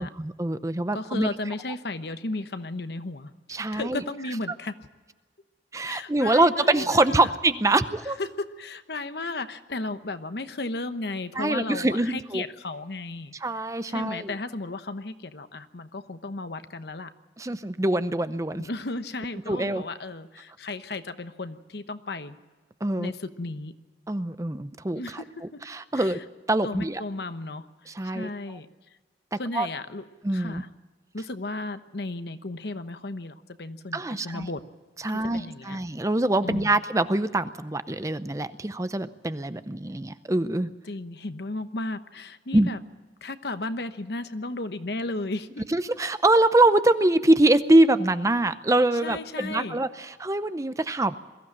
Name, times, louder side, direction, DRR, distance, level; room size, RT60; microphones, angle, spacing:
voice 1, 0.0-1.3 3.5-4.0 5.7-8.2 11.4-12.4 13.4-14.3 17.4-18.7 19.5-19.8 22.8-23.1 24.1-25.2 25.7-26.2 26.5-27.0 27.9-28.3 29.3-29.7 30.2-30.6 33.9-34.5 35.0-40.7 42.5-42.7 45.7-51.1, right 2 dB, 15° right, 12 dB, 0.6 m, -24 dB
voice 2, 0.9-4.9 5.8-7.3 8.2-13.3 13.9-17.1 18.6-22.4 23.0-23.7 24.9-25.6 25.9-26.2 26.6-27.7 28.0-28.7 29.4-30.0 30.3-30.7 31.1-34.6 35.1-35.8 36.4-36.8 40.8-42.8 43.2-45.6 49.0-49.8, left 2 dB, 65° left, 10 dB, 1.0 m, -34 dB
22.0 x 15.0 x 8.7 m, 1.4 s
head